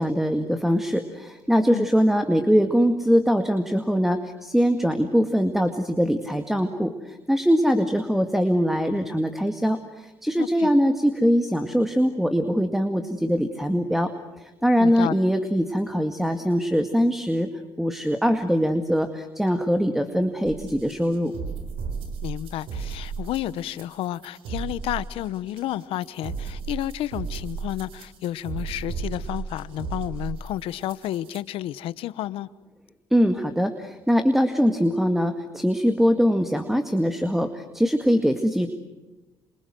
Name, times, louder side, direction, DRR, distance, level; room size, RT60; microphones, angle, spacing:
voice 1, 0.0-14.1 14.4-17.5 17.8-21.3 33.1-38.7, equal, 5° right, 7 dB, 2.0 m, -22 dB
voice 2, 10.4-10.7 14.8-15.2 22.2-32.5, left 13 dB, 80° left, 17 dB, 1.0 m, -31 dB
sound 1, 20.4-31.4, right 5 dB, 85° right, 4.2 m, -35 dB
28.0 x 26.5 x 7.7 m, 1.1 s
cardioid pair, 85°, 9 cm